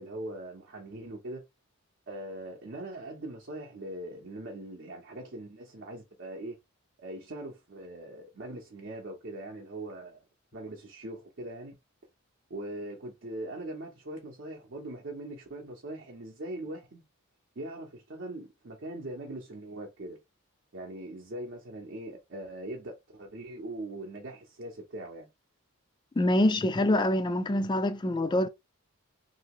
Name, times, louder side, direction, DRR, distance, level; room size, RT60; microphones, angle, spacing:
voice 1, 0.0-1.4 2.1-6.6 7.0-10.2 10.5-11.8 12.5-17.0 17.6-20.2 20.7-25.3, right 1 dB, 55° right, 0.7 m, -41 dB
voice 2, 26.2-28.5, left 1 dB, 20° left, 0.3 m, -25 dB
2.8 x 2.7 x 2.9 m
head